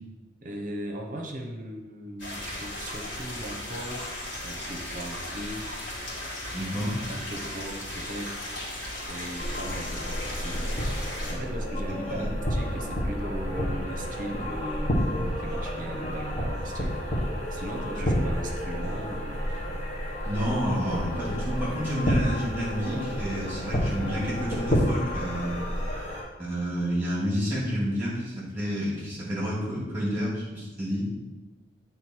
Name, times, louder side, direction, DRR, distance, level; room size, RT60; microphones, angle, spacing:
voice 1, 0.4-5.7 7.1-8.4 9.1-10.6 11.3-17.0 17.5-19.6, right 1 dB, 45° right, 2 dB, 1.0 m, -38 dB
sound 1, 2.2-11.3, left 1 dB, 75° left, 2.5 m, -36 dB
voice 2, 6.5-6.9 12.1-12.3 20.3-25.5 26.4-31.0, equal, 10° right, -6 dB, 2.5 m, -29 dB
sound 2, 9.4-26.2, equal, 35° left, 1.4 m, -30 dB
8.1 x 3.8 x 4.6 m, 1.1 s
head